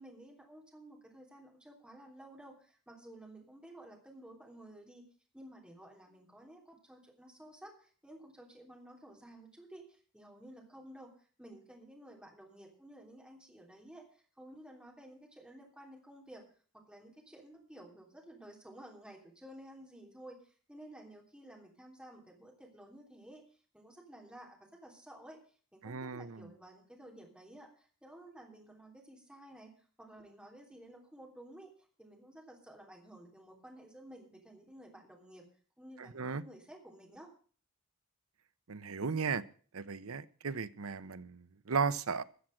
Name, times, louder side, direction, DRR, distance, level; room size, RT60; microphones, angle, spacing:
voice 1, 0.0-5.1 5.3-16.4 16.7-23.5 23.7-25.4 25.7-31.7 32.0-35.5 35.8-37.3, right 1 dB, 5° right, 0 dB, 3.2 m, -53 dB
voice 2, 25.8-26.5 36.0-36.4 38.7-39.4 39.7-42.2, right 5 dB, 70° right, 13 dB, 0.8 m, -36 dB
14.0 x 7.3 x 7.7 m, 0.42 s
head